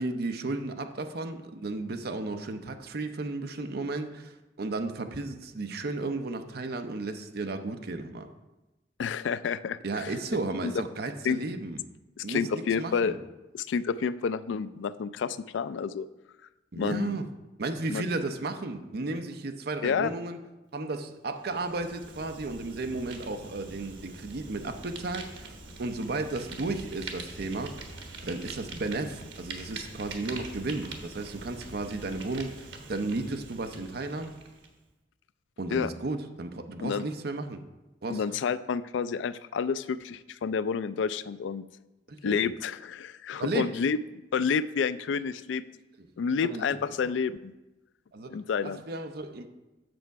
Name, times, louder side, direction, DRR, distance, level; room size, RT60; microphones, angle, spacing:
voice 1, 0.0-8.3 9.8-11.8 12.2-13.2 16.7-17.3 17.6-20.4 20.7-25.5 25.8-27.8 28.3-34.4 35.6-37.6 38.0-38.2 42.1-42.4 43.4-43.7 46.0-46.1 46.4-46.8 47.0-47.1 48.1-48.3 48.6-49.5, right 2 dB, 60° right, 7 dB, 0.7 m, -34 dB
voice 2, 9.0-10.1 10.6-10.7 11.2-11.4 12.2-13.1 13.5-16.1 16.8-17.2 17.9-18.0 19.8-20.1 35.7-35.9 36.8-37.0 38.1-41.7 42.2-44.0 44.3-45.6 46.2-47.5 48.3-48.8, left 6 dB, 90° left, 15 dB, 0.3 m, -29 dB
Fire, 21.4-34.7, right 3 dB, 90° right, 1.2 m, -44 dB
7.8 x 6.4 x 4.6 m, 1.0 s
head